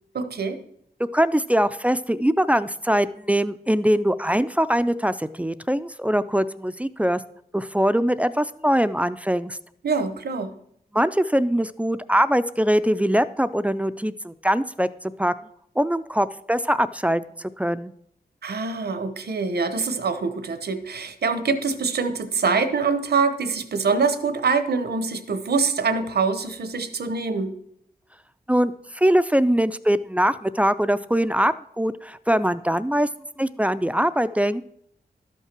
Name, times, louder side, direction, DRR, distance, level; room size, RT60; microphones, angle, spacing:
voice 1, 0.1-0.6 9.8-10.5 18.4-27.5, right 4 dB, 80° right, 11 dB, 0.9 m, -24 dB
voice 2, 1.1-7.2 7.5-9.6 10.9-14.9 15.2-15.3 15.8-17.9 28.5-33.1 33.4-34.7, equal, 10° right, 14 dB, 0.3 m, -22 dB
12.0 x 5.6 x 5.9 m, 0.71 s
wide cardioid pair, 110°, 16 cm